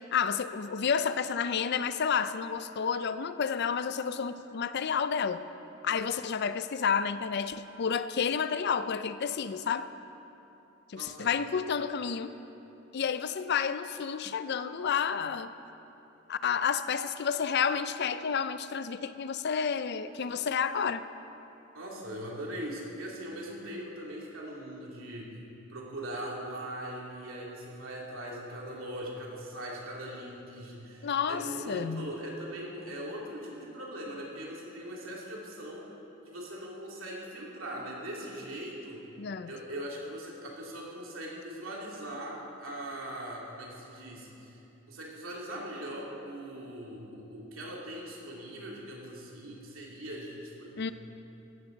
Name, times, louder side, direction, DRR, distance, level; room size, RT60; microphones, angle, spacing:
voice 1, 0.1-5.4 5.8-9.9 10.9-12.3 12.9-15.5 16.3-21.0 31.0-32.1 39.2-39.5 50.8-50.9, left 6 dB, 55° left, 12 dB, 0.5 m, -30 dB
voice 2, 10.9-11.3 21.7-25.4 25.7-35.9 36.3-39.0 39.4-44.6 44.9-50.9, right 1 dB, 85° right, -3 dB, 2.8 m, -40 dB
16.0 x 13.0 x 3.9 m, 3.0 s
head